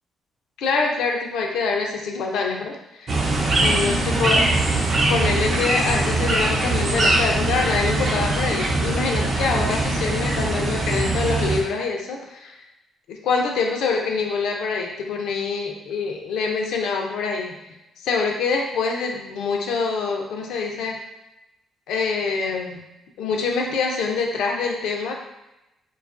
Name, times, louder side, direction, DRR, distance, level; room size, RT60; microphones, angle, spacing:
voice 1, 0.6-3.2 3.6-4.4 5.1-12.5 13.1-17.5 18.0-21.0 21.9-22.8 23.2-25.1, left 4 dB, 85° left, 1 dB, 0.4 m, -25 dB
sound 1, 3.1-11.6, right 2 dB, 50° right, 0.5 m, -22 dB
2.5 x 2.3 x 2.4 m, 0.93 s
cardioid pair, 90°, 0 cm